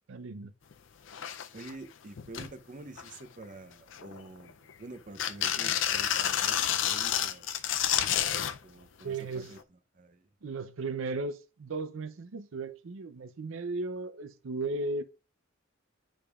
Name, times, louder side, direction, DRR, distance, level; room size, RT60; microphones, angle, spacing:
voice 1, 0.1-0.5 9.0-9.5 10.4-15.0, right 3 dB, 80° right, 0.5 m, -36 dB
sound 1, 0.7-0.8 1.1-1.7 2.2-2.5 3.0-3.4 3.9-4.7 5.2-8.6 9.6-9.7, left 10 dB, 70° left, 0.5 m, -30 dB
voice 2, 1.5-7.5 8.6-9.6 9.9-10.3, right 2 dB, 40° right, 0.7 m, -48 dB
8.9 x 4.9 x 2.4 m
head